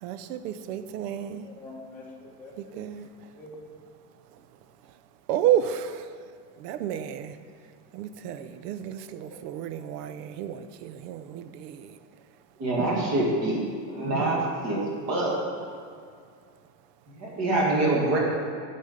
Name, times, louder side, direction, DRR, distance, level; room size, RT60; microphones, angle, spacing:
voice 1, 0.0-1.5 2.6-3.1 5.3-6.1 6.6-7.4 7.9-12.0, right 10 dB, 75° right, 12 dB, 0.6 m, -31 dB
voice 2, 0.9-3.6, left 2 dB, 5° left, -6 dB, 1.0 m, -47 dB
voice 3, 12.6-13.6 13.9-14.8 15.1-15.3 17.2-18.2, right 2 dB, 30° right, -3 dB, 1.8 m, -25 dB
9.6 x 4.3 x 5.0 m, 2.2 s
supercardioid pair, 155°, 49 cm